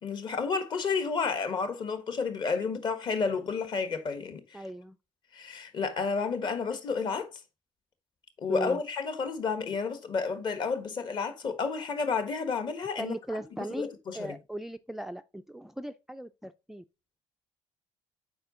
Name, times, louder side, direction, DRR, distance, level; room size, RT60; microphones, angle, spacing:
voice 1, 0.0-4.6 5.3-7.3 8.4-13.1 13.7-14.4, left 5 dB, 45° left, 1.4 m, -31 dB
voice 2, 4.5-5.0 8.5-8.8 13.0-13.9 14.1-16.8, right 1 dB, 5° right, 0.3 m, -38 dB
8.0 x 4.9 x 3.8 m
cardioid pair, 120°, 11 cm